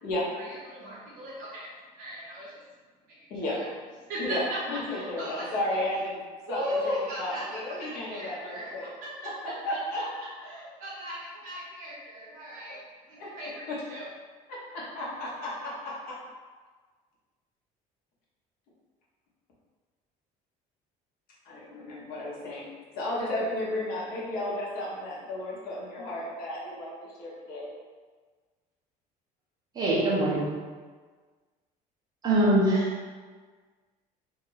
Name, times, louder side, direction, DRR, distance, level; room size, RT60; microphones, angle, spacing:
voice 1, 0.4-1.7 2.0-2.6 3.1-3.6 4.1-4.6 4.9-5.5 6.5-8.9 9.2-9.5 9.9-10.0 10.4-12.8 13.1-14.1, equal, 60° right, -6 dB, 1.0 m, -37 dB
voice 2, 4.2-6.2 6.5-8.9 9.6-10.0 13.2-13.3 13.7-13.8 14.5-16.2 21.4-26.9 27.2-27.7, left 1 dB, 65° left, -6 dB, 1.2 m, -33 dB
voice 3, 29.7-30.5 32.2-33.1, right 1 dB, 25° right, -5 dB, 0.8 m, -23 dB
2.9 x 2.7 x 4.0 m, 1.5 s
cardioid pair, 175°, 16 cm